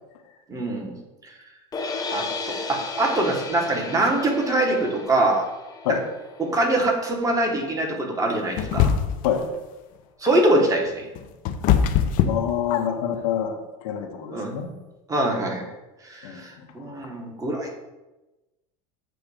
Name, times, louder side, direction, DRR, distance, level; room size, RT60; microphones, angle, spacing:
voice 1, 0.5-0.9 1.2-1.3 2.1-5.5 5.9-6.0 6.4-8.9 10.2-11.1 14.3-14.6 15.1-15.6 16.0-17.7, right 1 dB, 20° right, 0 dB, 1.3 m, -23 dB
sound 1, 1.7-7.9, left 4 dB, 20° left, 0.8 m, -35 dB
sound 2, 8.6-9.3 10.9-13.2, left 8 dB, 50° left, 0.5 m, -22 dB
voice 2, 12.2-13.6 13.8-14.7 16.2-17.1, left 9 dB, 75° left, 3 dB, 0.9 m, -27 dB
7.8 x 2.6 x 4.9 m, 1.1 s
supercardioid pair, 115°, 18 cm